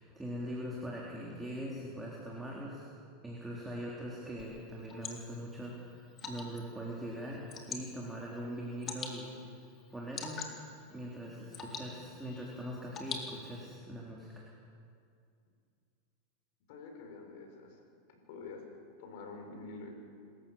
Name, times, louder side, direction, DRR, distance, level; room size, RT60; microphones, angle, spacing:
voice 1, 0.0-2.9 3.2-7.4 7.7-9.3 9.9-10.5 10.9-14.4, equal, 5° right, -4 dB, 3.8 m, -42 dB
Water / Drip, 4.4-13.8, left 5 dB, 35° left, 3.2 m, -46 dB
voice 2, 16.7-17.8 18.3-18.6 19.0-20.0, left 3 dB, 65° left, 3 dB, 5.8 m, -47 dB
26.5 x 14.5 x 7.5 m, 2.4 s
hypercardioid pair, 120°, 0 cm